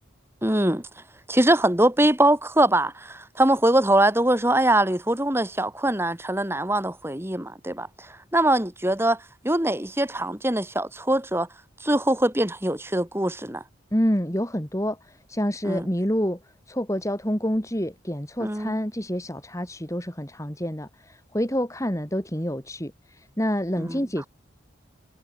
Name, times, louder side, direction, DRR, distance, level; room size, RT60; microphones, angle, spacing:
voice 1, 0.4-0.9 1.3-11.5 11.8-13.6 15.6-15.9 18.4-18.8 23.8-24.0, right 1 dB, 10° right, 2.2 m, -23 dB
voice 2, 13.9-24.3, equal, 15° left, 4.4 m, -28 dB
head